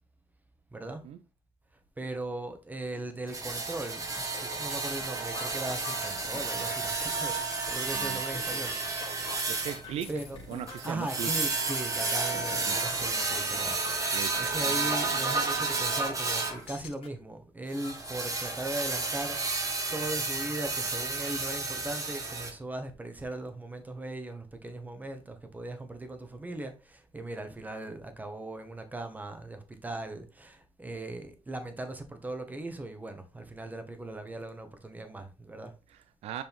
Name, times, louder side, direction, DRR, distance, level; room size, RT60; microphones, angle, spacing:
voice 1, 0.7-1.0 2.0-8.8 10.1-10.4 10.8-13.8 14.3-19.6 19.9-35.7, right 1 dB, 15° right, 1.4 m, -39 dB
sound 1, 3.3-16.6 17.7-22.5, right 3 dB, 30° right, 1.6 m, -31 dB
sound 2, 4.2-17.1 17.8-18.3 18.9-19.0 19.3-19.9, left 6 dB, 60° left, 1.8 m, -46 dB
voice 2, 9.5-10.1 10.5-11.3 12.6-12.8 14.1-14.3 35.9-36.4, right 10 dB, 75° right, 0.5 m, -38 dB
7.3 x 5.1 x 3.6 m
cardioid pair, 120°, 11 cm